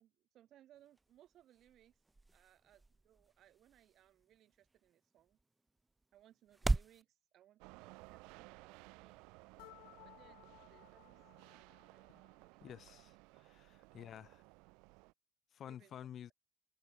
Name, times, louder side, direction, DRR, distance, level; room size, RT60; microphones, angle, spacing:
voice 1, 0.0-2.0 2.3-5.4 6.1-9.3 10.0-11.2 11.5-12.1 12.5-12.6 13.9-14.2 15.7-16.0, right 12 dB, 55° right, 7.4 m, -67 dB
sound 1, 0.7-7.0, right 2 dB, 15° right, 0.5 m, -42 dB
sound 2, 7.6-15.1, right 28 dB, 75° right, 1.1 m, -59 dB
sound 3, 9.6-12.5, left 35 dB, 80° left, 2.6 m, -61 dB
voice 2, 12.6-14.4 15.5-16.3, left 10 dB, 45° left, 2.7 m, -51 dB
supercardioid pair, 90°, 0 cm